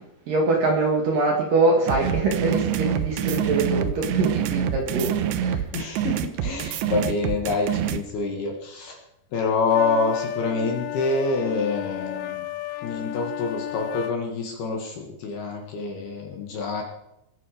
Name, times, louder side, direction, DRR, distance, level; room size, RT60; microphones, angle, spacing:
voice 1, 0.3-5.6, right 3 dB, 55° right, 1 dB, 3.0 m, -23 dB
sound 1, 1.9-8.0, right 9 dB, 75° right, 2.6 m, -26 dB
voice 2, 5.7-9.0 9.3-12.5 12.8-16.8, left 4 dB, 60° left, 2 dB, 3.2 m, -27 dB
sound 2, 9.7-14.2, left 12 dB, 80° left, 2.5 m, -33 dB
21.5 x 11.5 x 5.1 m, 0.86 s
omnidirectional pair, 6.0 m